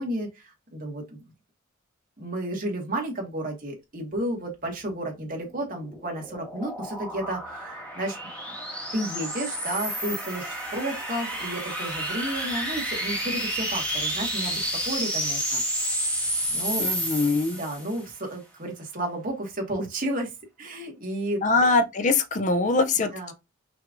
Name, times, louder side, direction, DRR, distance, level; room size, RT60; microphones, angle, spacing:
voice 1, 0.0-1.3 2.2-8.2 8.9-15.6 16.5-16.9 17.5-20.3 20.6-21.4 23.1-23.3, right 1 dB, 40° right, 1.7 m, -32 dB
sound 1, 5.4-18.0, right 1 dB, 5° left, 1.6 m, -30 dB
voice 2, 16.8-17.6 21.4-23.3, left 3 dB, 35° left, 0.4 m, -23 dB
5.8 x 3.3 x 2.5 m
head